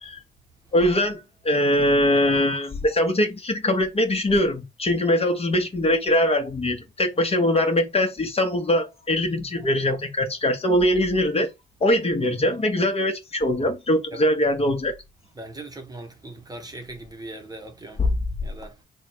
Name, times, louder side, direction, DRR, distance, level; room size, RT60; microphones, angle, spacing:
voice 1, 0.7-11.5 11.8-14.9 18.0-18.1, left 1 dB, 30° left, 1.0 m, -22 dB
voice 2, 15.4-18.1 18.4-18.8, right 2 dB, 20° right, 0.9 m, -39 dB
3.6 x 2.2 x 4.3 m
cardioid pair, 90°, 20 cm